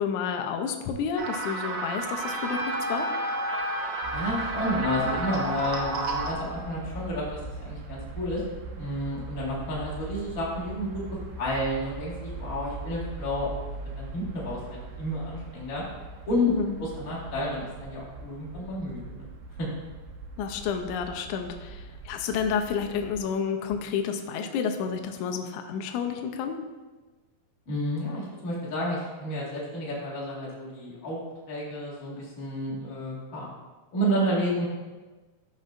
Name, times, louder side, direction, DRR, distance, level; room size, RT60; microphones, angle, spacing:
voice 1, 0.0-3.1 16.5-16.8 20.4-26.6, left 6 dB, 80° left, 5 dB, 1.9 m, -30 dB
sound 1, 1.2-6.3, right 3 dB, 65° right, 1.4 m, -32 dB
Trumpet, 2.2-6.9, left 1 dB, 15° left, 2.1 m, -35 dB
sound 2, 4.0-23.2, right 3 dB, 90° right, 2.3 m, -41 dB
voice 2, 4.1-8.4 8.7-11.0 11.4-13.5 14.0-15.8 16.3-16.5 16.8-19.3 19.6-19.7 27.7-31.2 31.5-33.5 33.9-34.7, equal, 35° left, -6 dB, 1.7 m, -30 dB
12.0 x 5.3 x 2.5 m, 1.3 s
omnidirectional pair, 3.7 m